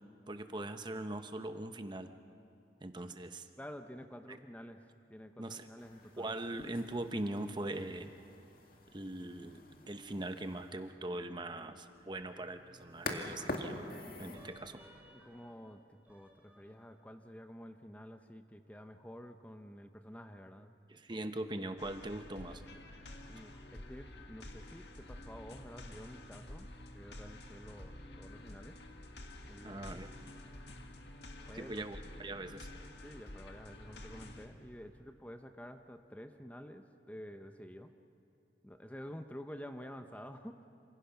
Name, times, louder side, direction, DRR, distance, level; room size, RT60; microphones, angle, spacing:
voice 1, 0.3-2.1 2.8-3.5 4.3-4.4 5.4-5.7 6.2-8.1 8.9-14.8 20.9-22.6 29.6-30.1 31.5-32.7, right 1 dB, 25° right, 8 dB, 0.9 m, -41 dB
voice 2, 3.6-6.3 15.1-20.7 21.1-21.2 23.3-26.7 26.9-28.8 29.5-29.8 31.4-31.7 33.0-37.9 38.6-40.7, equal, 10° left, 7 dB, 0.7 m, -50 dB
sound 1, 5.8-14.5, left 2 dB, 55° left, 2.2 m, -46 dB
sound 2, 12.3-13.4 13.9-17.3, equal, 10° right, 2.7 m, -62 dB
sound 3, 21.8-34.5, left 1 dB, 75° left, 1.8 m, -50 dB
27.5 x 26.5 x 5.9 m, 2.5 s
head